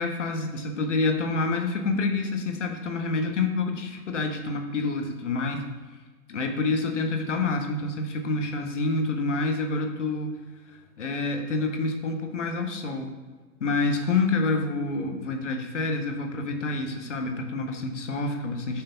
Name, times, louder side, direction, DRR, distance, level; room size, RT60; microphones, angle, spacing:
voice 1, 0.0-5.6 6.3-10.3 10.7-13.1 13.6-18.8, left 3 dB, 50° left, 4 dB, 0.9 m, -27 dB
5.7 x 3.3 x 5.4 m, 1.4 s
hypercardioid pair, 155°, 47 cm